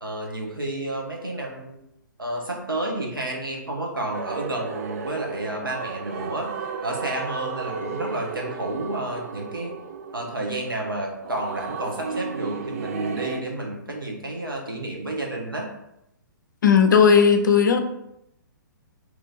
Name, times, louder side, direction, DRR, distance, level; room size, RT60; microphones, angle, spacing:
voice 1, 0.0-1.8 2.2-6.5 6.8-9.8 10.1-15.7, right 1 dB, 85° right, 0 dB, 0.9 m, -30 dB
sound 1, 4.1-13.4, right 5 dB, 45° right, 0.4 m, -34 dB
voice 2, 16.6-17.8, left 6 dB, 65° left, 6 dB, 0.5 m, -16 dB
3.0 x 2.6 x 3.9 m, 0.83 s
figure-of-eight pair, 120°, 11 cm